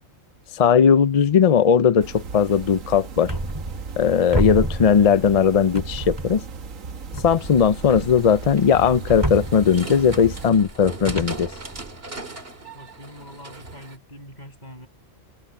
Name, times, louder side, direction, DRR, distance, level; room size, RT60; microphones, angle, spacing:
voice 1, 0.5-3.3 4.0-6.4 7.2-11.5, left 7 dB, 60° left, 0.4 m, -18 dB
sound 1, 2.0-10.5, right 5 dB, 85° right, 1.6 m, -37 dB
sound 2, 3.3-4.1 4.3-5.4 5.7-6.6 7.1-12.2, right 1 dB, 20° right, 2.5 m, -31 dB
sound 3, 7.3-14.0, right 3 dB, 50° right, 2.5 m, -40 dB
voice 2, 12.7-14.9, equal, 35° left, 8.1 m, -43 dB
omnidirectional pair, 1.4 m